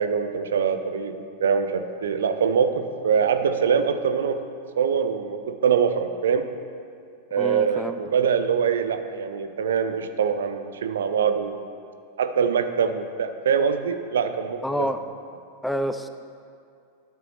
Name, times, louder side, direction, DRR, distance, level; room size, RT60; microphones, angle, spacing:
voice 1, 0.0-4.4 4.8-6.5 7.3-11.6 12.2-14.9, right 6 dB, 65° right, 9 dB, 0.5 m, -24 dB
voice 2, 7.4-8.0 14.6-15.0 15.6-16.1, equal, 5° left, 9 dB, 0.3 m, -27 dB
12.5 x 6.8 x 3.1 m, 2.4 s
figure-of-eight pair, 90°, 0 cm